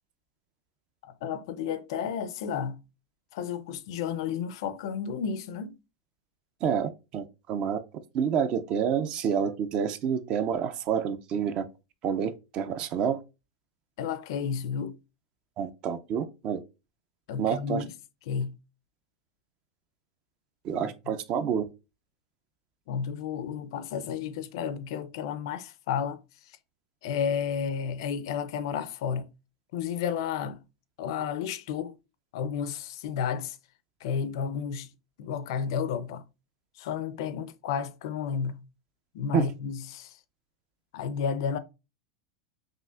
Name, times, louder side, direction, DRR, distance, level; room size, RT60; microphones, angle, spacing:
voice 1, 1.0-2.8 3.3-5.7 14.0-14.9 17.3-17.9 18.3-18.5 20.8-21.1 22.9-26.2 27.0-29.3 29.7-30.6 31.0-31.9 32.3-33.6 34.0-34.9 35.2-36.2 36.8-38.6 39.1-40.1 40.9-41.6, left 7 dB, 50° left, 0.4 m, -32 dB
voice 2, 6.6-7.8 8.1-11.6 12.0-13.2 15.6-16.6 17.4-17.8 20.6-21.6 39.3-39.5, right 7 dB, 25° right, 0.3 m, -28 dB
5.5 x 2.8 x 2.3 m
supercardioid pair, 180°, 3 cm